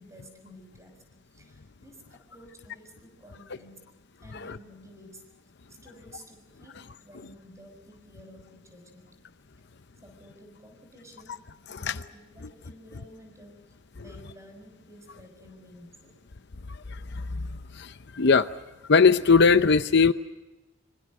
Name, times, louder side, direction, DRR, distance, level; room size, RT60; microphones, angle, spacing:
voice 1, 0.0-3.9 4.2-5.2 5.7-9.2 10.0-11.4 11.7-16.2, equal, 15° right, 5 dB, 6.0 m, -52 dB
voice 2, 16.9-17.5 17.7-18.5 18.9-20.1, left 5 dB, 60° left, 11 dB, 0.7 m, -20 dB
25.5 x 25.0 x 6.5 m, 1.1 s
head